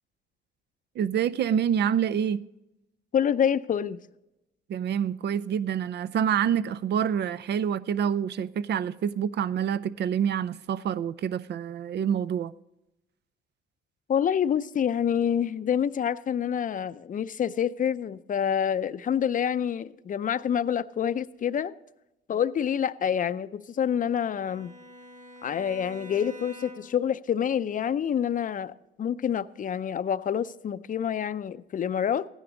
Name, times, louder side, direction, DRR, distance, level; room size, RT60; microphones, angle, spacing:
voice 1, 1.0-2.4 4.7-12.5, right 8 dB, 60° right, 0.5 m, -27 dB
voice 2, 3.1-4.0 14.1-21.7 22.3-24.7 25.4-28.7 29.0-32.3, left 8 dB, 40° left, 0.5 m, -27 dB
Bowed string instrument, 24.0-27.1, equal, 40° right, 2.4 m, -46 dB
16.0 x 10.0 x 3.9 m
cardioid pair, 90°, 20 cm